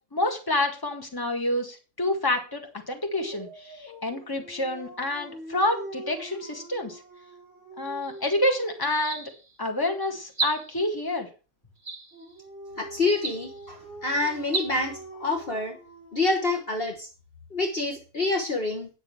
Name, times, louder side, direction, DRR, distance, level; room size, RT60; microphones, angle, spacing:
voice 1, 0.1-7.0 7.8-9.3 9.6-11.3, left 1 dB, 15° left, 4 dB, 1.8 m, -28 dB
Dog, 3.1-8.9 12.1-16.7, right 2 dB, 60° left, 3.5 m, -44 dB
sound 1, 8.0-8.3 8.9-9.6 10.3-10.9 11.8-12.4 13.1-13.7 14.4-14.7, right 3 dB, 30° right, 1.6 m, -33 dB
voice 2, 12.8-15.8 16.1-17.1 17.5-18.9, left 2 dB, 45° left, 3 dB, 1.6 m, -27 dB
9.6 x 6.4 x 6.2 m, 0.33 s
omnidirectional pair, 1.5 m